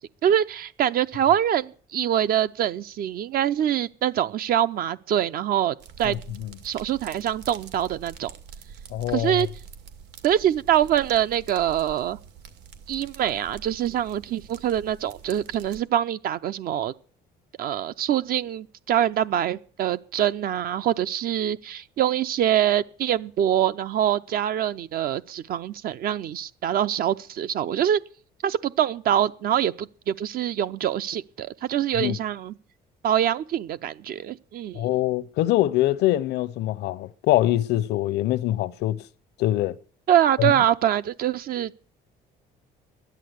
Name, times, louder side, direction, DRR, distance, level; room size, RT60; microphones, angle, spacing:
voice 1, 0.2-6.2 6.6-8.3 9.1-9.5 10.2-12.2 12.9-16.9 17.6-28.0 28.4-32.5 33.0-34.9 40.1-41.7, right 10 dB, 60° right, 0.6 m, -24 dB
sound 1, 5.8-15.8, right 7 dB, 80° right, 2.3 m, -45 dB
voice 2, 8.9-9.5 32.0-32.2 34.8-39.0 39.4-39.7 40.4-40.5, left 14 dB, 80° left, 0.8 m, -23 dB
12.5 x 10.5 x 8.0 m
cardioid pair, 110°, 17 cm